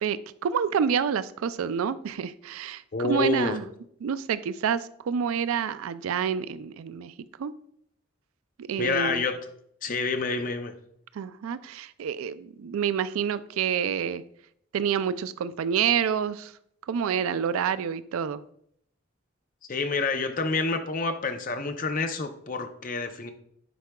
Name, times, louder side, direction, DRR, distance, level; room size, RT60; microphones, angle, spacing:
voice 1, 0.0-3.7 4.0-7.5 8.6-9.2 11.1-14.2 14.7-16.6 16.8-18.4, right 7 dB, 85° right, 15 dB, 0.3 m, -28 dB
voice 2, 2.9-3.6 8.8-9.4 9.8-10.7 19.7-23.3, left 3 dB, 40° left, 7 dB, 0.5 m, -28 dB
10.0 x 4.7 x 2.2 m, 0.71 s
head